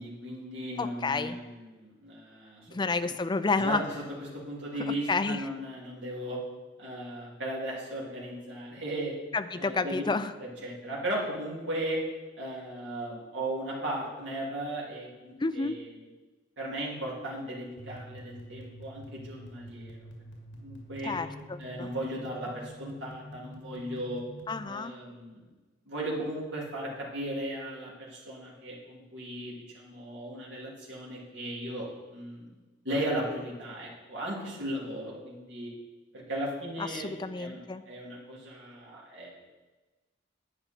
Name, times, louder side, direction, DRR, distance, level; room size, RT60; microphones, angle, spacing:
voice 1, 0.0-2.7 3.6-4.0 4.3-6.4 6.8-9.1 9.5-10.0 10.4-12.0 12.4-15.9 16.6-20.0 20.5-21.1 21.6-24.2 24.6-25.4 25.9-32.5 32.8-35.7 36.1-37.1 37.3-37.6 37.9-39.3, right 1 dB, 65° right, -5 dB, 3.2 m, -36 dB
voice 2, 0.8-1.4 2.7-3.8 5.1-5.4 9.3-10.3 15.4-15.8 21.0-21.9 24.5-25.0 36.8-37.8, left 4 dB, 25° left, 10 dB, 0.4 m, -30 dB
sound 1, 17.8-24.6, equal, 80° left, 1.9 m, -47 dB
11.0 x 9.3 x 4.5 m, 1.2 s
head